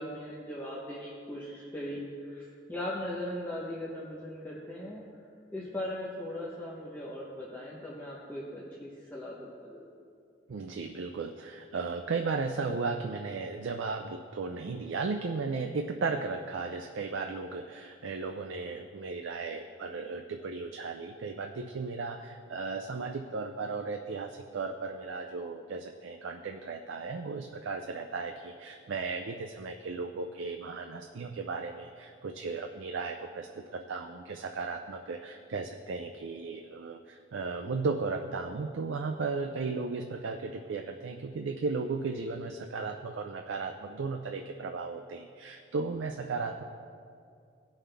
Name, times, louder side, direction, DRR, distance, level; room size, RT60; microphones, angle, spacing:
voice 1, 0.0-5.0 5.5-9.8, left 1 dB, 10° left, -6 dB, 0.8 m, -39 dB
voice 2, 10.5-46.6, right 4 dB, 80° right, 5 dB, 0.4 m, -35 dB
17.0 x 5.6 x 3.4 m, 2.4 s
head